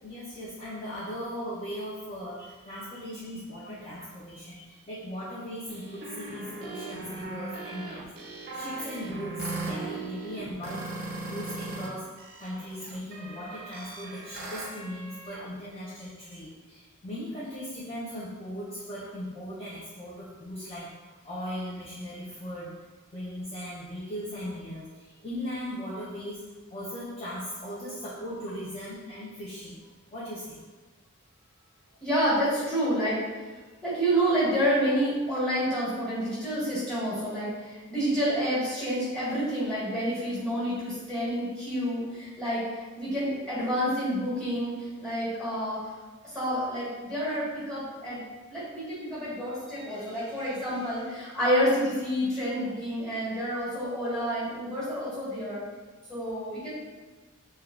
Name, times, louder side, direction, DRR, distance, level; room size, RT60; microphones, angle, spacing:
voice 1, 0.0-12.1 12.4-20.9 21.2-22.8 23.1-26.4 26.7-29.8 30.1-30.6, equal, 25° left, -8 dB, 0.4 m, -38 dB
sound 1, 5.7-11.9 12.2-15.5, right 3 dB, 45° right, 0.4 m, -38 dB
voice 2, 32.0-33.2 33.8-45.8 46.2-48.2 48.5-55.6 56.1-56.7, equal, 5° left, -11 dB, 1.3 m, -29 dB
3.3 x 2.2 x 2.3 m, 1.3 s
head